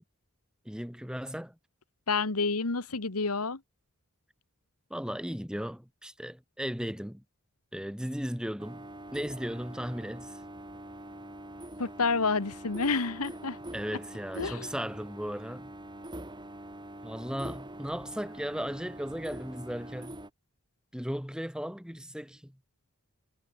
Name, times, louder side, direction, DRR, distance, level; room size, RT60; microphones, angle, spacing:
voice 1, 0.6-1.5 4.9-7.2 7.7-10.4 13.7-15.7 17.0-20.2 20.9-22.6, equal, 5° right, 2.8 m, -36 dB
voice 2, 2.1-3.6 11.8-13.6 14.4-14.7, left 4 dB, 85° left, 1.6 m, -29 dB
sound 1, 8.6-20.3, right 1 dB, 20° right, 5.2 m, -44 dB
head